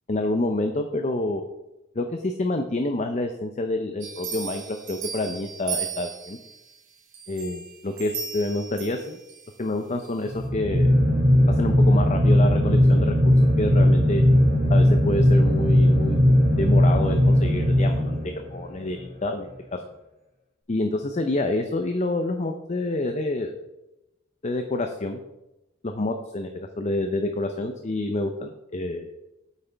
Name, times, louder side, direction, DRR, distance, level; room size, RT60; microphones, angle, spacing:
voice 1, 0.1-1.4 2.0-6.4 7.3-9.2 9.6-10.9 11.6-14.2 14.7-19.5 20.7-23.5 24.4-25.2 25.8-29.1, left 2 dB, 35° left, 6 dB, 0.6 m, -28 dB
sound 1, 4.0-6.6 7.1-9.5 10.0-10.1, right 7 dB, 75° right, 1.8 m, -36 dB
sound 2, 10.3-18.6, equal, 40° right, 2.9 m, -18 dB
8.9 x 8.4 x 3.4 m, 0.94 s
head